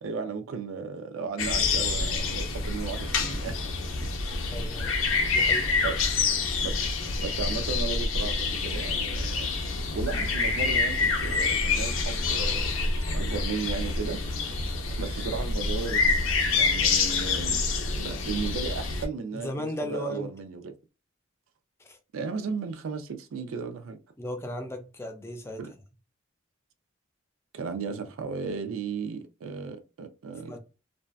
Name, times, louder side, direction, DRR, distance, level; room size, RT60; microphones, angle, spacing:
voice 1, 0.0-3.6 4.0-4.1 5.8-6.0 6.6-6.8 7.2-12.7 13.1-14.2 15.0-17.6 18.0-20.7 22.1-24.0 25.6-25.7 27.5-30.6, right 5 dB, 85° right, 0.4 m, -35 dB
sound 1, 1.4-19.1, left 4 dB, 85° left, 0.6 m, -27 dB
voice 2, 4.5-5.0 5.3-5.8 19.3-20.3 21.9-22.0 24.2-25.6 30.5-30.6, left 1 dB, 15° left, 0.4 m, -36 dB
2.6 x 2.2 x 2.3 m
head